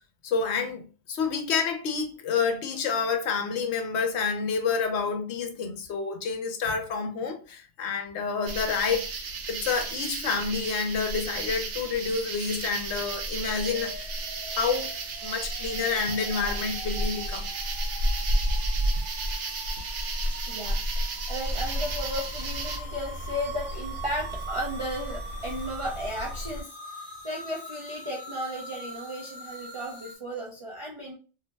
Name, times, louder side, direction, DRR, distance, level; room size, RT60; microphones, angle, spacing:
voice 1, 0.2-9.1 9.5-13.9 14.6-14.9 15.2-17.5, left 5 dB, 70° left, 0.8 m, -28 dB
sound 1, 8.5-22.8, right 2 dB, 75° right, 1.0 m, -31 dB
sound 2, 13.4-30.1, right 1 dB, 25° right, 0.8 m, -43 dB
voice 2, 20.5-31.1, equal, 45° right, 0.4 m, -35 dB
sound 3, 21.4-26.6, equal, 30° left, 0.8 m, -39 dB
2.6 x 2.0 x 3.2 m
omnidirectional pair, 1.2 m